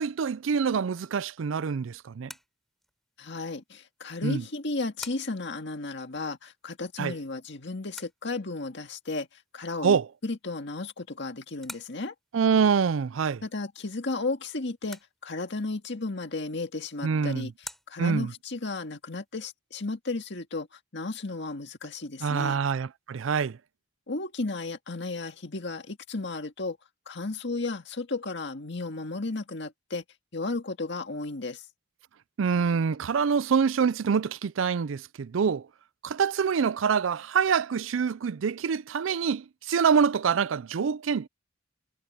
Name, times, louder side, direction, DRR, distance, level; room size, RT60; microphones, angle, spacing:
voice 1, 0.0-2.3 4.2-4.4 7.0-7.1 9.8-10.1 12.3-13.4 17.0-17.5 18.0-18.3 22.2-23.6 32.4-35.6 36.0-41.3, right 6 dB, 75° right, 0.4 m, -25 dB
sound 1, 1.2-19.4, equal, ahead, 4.7 m, -52 dB
voice 2, 3.2-9.3 9.5-12.1 13.4-17.5 17.9-20.7 20.9-22.6 24.1-26.8 27.1-30.0 30.3-31.6, left 3 dB, 60° left, 1.9 m, -34 dB
head